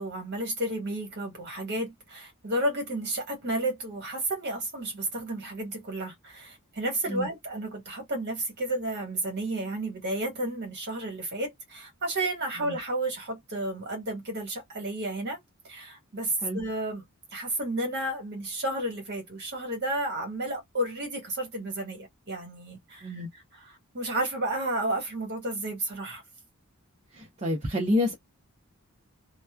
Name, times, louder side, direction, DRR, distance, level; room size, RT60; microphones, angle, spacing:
voice 1, 0.0-15.4 15.6-17.0 17.3-23.1 23.9-26.2, right 1 dB, 50° right, 1.5 m, -32 dB
voice 2, 27.1-28.1, left 1 dB, 30° right, 0.7 m, -28 dB
2.9 x 2.2 x 2.3 m
head